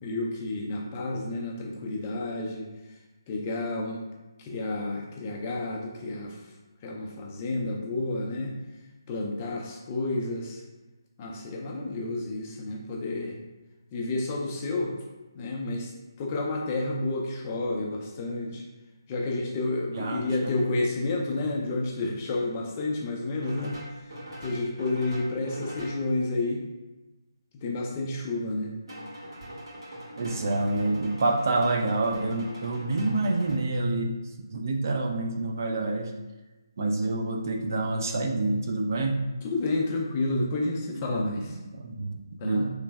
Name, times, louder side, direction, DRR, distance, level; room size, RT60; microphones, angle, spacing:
voice 1, 0.0-2.7 3.3-4.0 4.4-6.4 6.8-8.6 9.1-10.6 11.2-13.4 13.9-15.0 15.3-15.9 16.2-18.6 19.1-23.8 24.4-26.6 27.5-28.7 39.4-41.6 42.4-42.7, left 2 dB, 25° left, 0 dB, 0.4 m, -30 dB
voice 2, 19.9-20.5 21.3-21.7 30.2-36.1 36.8-39.3 40.9-41.5 41.7-42.7, right 2 dB, 45° right, 3 dB, 0.4 m, -28 dB
sound 1, 20.6-20.7 23.4-26.0 28.9-33.5, equal, 75° right, 1.5 m, -42 dB
3.2 x 3.0 x 2.2 m, 1.1 s
figure-of-eight pair, 150°, 2 cm